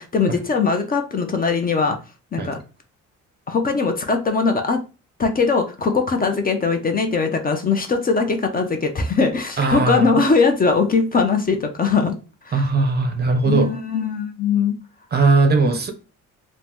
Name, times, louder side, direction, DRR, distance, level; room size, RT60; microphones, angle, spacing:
voice 1, 0.0-2.0 2.3-2.6 3.5-4.8 5.2-12.2 12.5-12.6 13.5-14.8, left 4 dB, 30° left, 0.5 m, -20 dB
voice 2, 9.6-10.2 12.5-13.7 15.1-15.9, right 3 dB, 35° right, 0.5 m, -19 dB
2.8 x 2.1 x 3.4 m
cardioid pair, 90°, 30 cm